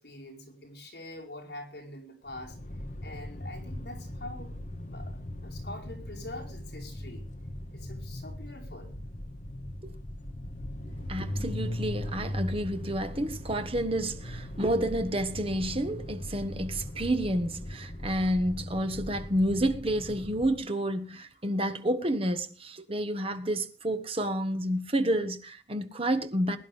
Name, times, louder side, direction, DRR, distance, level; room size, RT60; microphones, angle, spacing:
voice 1, 0.0-2.6 3.0-4.5 4.9-7.2 7.7-8.9, left 1 dB, 60° left, 4.8 m, -44 dB
sound 1, 2.3-20.6, left 1 dB, 45° left, 1.2 m, -39 dB
voice 2, 11.1-26.6, right 1 dB, 30° right, 1.4 m, -29 dB
21.5 x 11.0 x 3.6 m
head